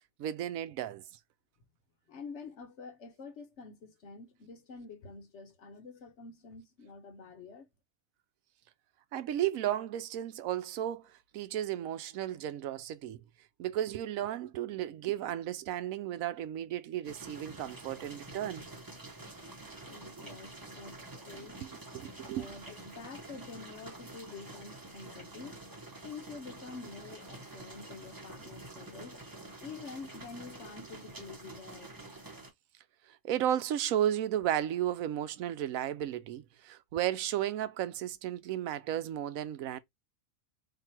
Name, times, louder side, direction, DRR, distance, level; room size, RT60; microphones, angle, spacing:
voice 1, 0.2-1.0 9.1-13.2 13.6-18.7 21.4-22.5 33.1-39.8, right 11 dB, 85° right, 1.0 m, -34 dB
voice 2, 2.1-7.7 19.9-21.6 22.3-25.6 26.0-29.2 29.6-31.9, left 4 dB, 60° left, 1.1 m, -47 dB
sound 1, 17.0-32.5, right 2 dB, 20° right, 0.8 m, -48 dB
3.9 x 2.7 x 4.3 m
omnidirectional pair, 1.4 m